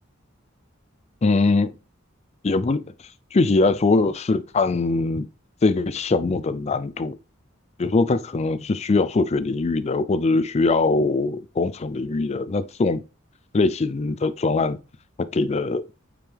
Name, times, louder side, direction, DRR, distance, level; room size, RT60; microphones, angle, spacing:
voice 1, 1.2-1.7 2.4-2.8 3.3-5.3 5.6-7.2 7.8-13.0 13.5-14.8 15.3-15.8, left 3 dB, 35° left, 0.4 m, -22 dB
7.5 x 5.4 x 3.4 m
head